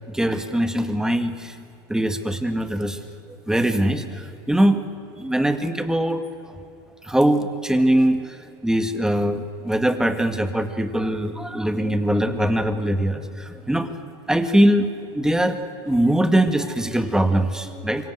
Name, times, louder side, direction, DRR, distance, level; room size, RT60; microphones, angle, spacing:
voice 1, 0.1-1.5 1.9-3.0 3.5-4.8 5.2-6.6 7.0-8.4 8.6-14.0 14.3-15.6 15.9-18.1, right 1 dB, 5° right, 8 dB, 2.0 m, -22 dB
26.0 x 23.5 x 7.8 m, 2.7 s
supercardioid pair, 115°, 12 cm